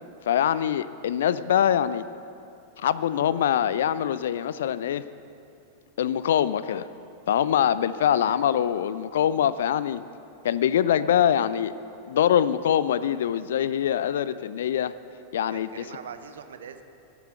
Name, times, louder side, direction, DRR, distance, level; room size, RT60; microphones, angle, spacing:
voice 1, 0.3-2.0 2.8-5.0 6.0-6.9 7.3-10.0 10.4-11.7 12.1-14.9 15.3-15.7, left 9 dB, 60° left, 16 dB, 0.4 m, -23 dB
voice 2, 15.5-16.8, right 7 dB, 65° right, 9 dB, 0.8 m, -42 dB
15.0 x 7.1 x 7.7 m, 2.6 s
figure-of-eight pair, 90°, 0 cm